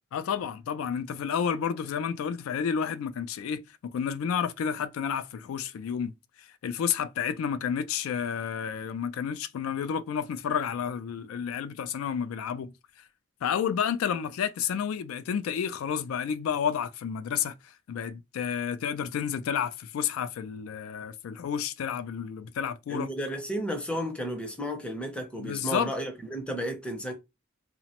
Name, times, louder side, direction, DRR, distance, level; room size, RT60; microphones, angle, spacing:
voice 1, 0.1-6.1 6.6-12.7 13.4-17.5 17.9-23.1 25.4-25.9, left 7 dB, 85° left, 0.3 m, -30 dB
voice 2, 22.9-27.1, equal, 5° left, 0.5 m, -33 dB
2.9 x 2.0 x 2.8 m
head